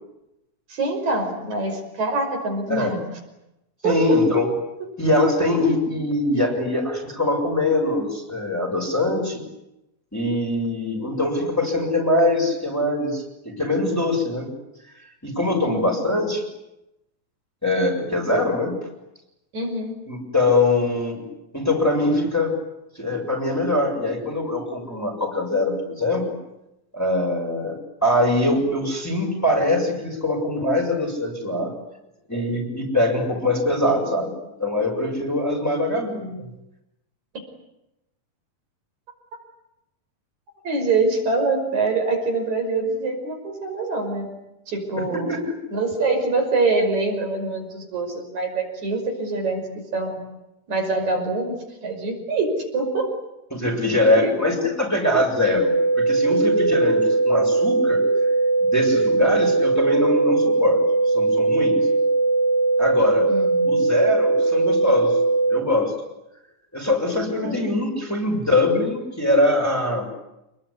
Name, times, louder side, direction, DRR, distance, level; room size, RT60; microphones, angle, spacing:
voice 1, 0.7-3.1 3.8-4.4 15.7-16.3 19.5-19.9 40.6-44.3 44.7-45.3 45.7-49.6 49.9-50.2 50.7-51.5 51.8-53.1 54.2-54.3 63.3-63.9 67.4-67.5, right 3 dB, 75° right, 2 dB, 7.0 m, -24 dB
voice 2, 3.8-4.5 5.0-9.4 10.1-14.5 15.2-16.4 17.6-18.7 20.1-21.2 21.5-22.5 22.9-26.2 26.9-27.7 28.0-31.7 32.3-34.3 34.6-36.5 45.3-45.5 53.5-55.7 56.0-58.0 58.6-60.8 61.1-61.9 62.8-63.3 63.6-65.1 65.5-65.9 66.7-70.1, left 2 dB, 5° left, 0 dB, 6.9 m, -22 dB
sound 1, 55.6-65.6, right 3 dB, 75° left, 3.7 m, -20 dB
28.5 x 21.0 x 10.0 m, 0.90 s
omnidirectional pair, 3.3 m